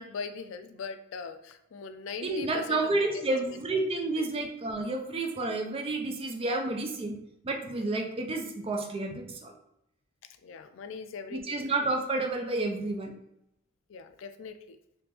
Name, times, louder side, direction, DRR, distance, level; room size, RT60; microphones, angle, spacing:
voice 1, 0.0-2.8 3.1-3.2 4.2-4.3 10.4-11.6 13.9-14.8, left 5 dB, 65° left, 9 dB, 0.3 m, -40 dB
voice 2, 2.2-9.5 11.3-13.1, right 2 dB, 30° right, 3 dB, 0.4 m, -30 dB
3.5 x 2.4 x 2.9 m, 0.81 s
head